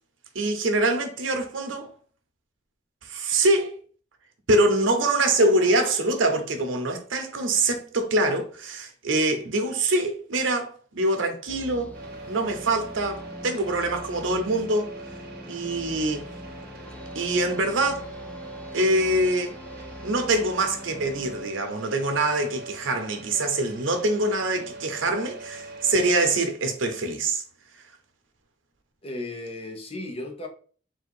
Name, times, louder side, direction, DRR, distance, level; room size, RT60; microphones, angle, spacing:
voice 1, 0.3-1.9 3.0-3.8 4.5-12.0 12.3-14.9 15.5-16.3 17.1-18.1 18.7-19.6 20.0-27.4, right 2 dB, 90° right, 0.8 m, -24 dB
sound 1, 11.5-21.5, left 1 dB, 5° left, 0.3 m, -43 dB
sound 2, 11.9-26.4, right 2 dB, 55° right, 0.7 m, -42 dB
voice 2, 29.0-30.5, left 2 dB, 30° left, 0.8 m, -35 dB
3.7 x 2.6 x 4.6 m
head